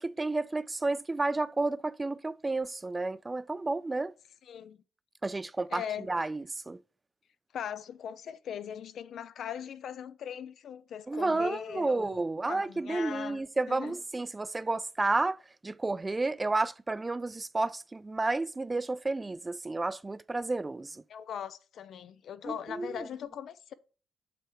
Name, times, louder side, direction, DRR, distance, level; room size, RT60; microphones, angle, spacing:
voice 1, 0.0-4.1 5.2-6.8 11.1-21.0 22.4-23.1, right 2 dB, 20° right, 0.3 m, -31 dB
voice 2, 4.5-4.8 5.7-6.1 7.5-12.2 12.5-13.4 13.7-14.0 21.1-23.7, left 9 dB, 65° left, 0.6 m, -40 dB
7.8 x 3.4 x 4.6 m
cardioid pair, 90°, 0 cm